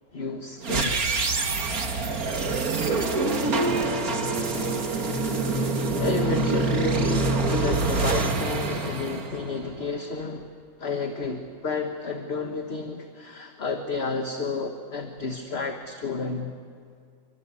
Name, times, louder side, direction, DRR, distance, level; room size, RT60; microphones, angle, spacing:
voice 1, 0.1-1.0 6.0-10.5 10.8-16.5, left 4 dB, 45° left, 5 dB, 1.7 m, -31 dB
sound 1, 0.6-9.8, right 3 dB, 70° right, 2.4 m, -26 dB
voice 2, 2.8-4.7, equal, 35° right, -7 dB, 8.1 m, -38 dB
28.0 x 23.5 x 8.5 m, 2.3 s
omnidirectional pair, 1.6 m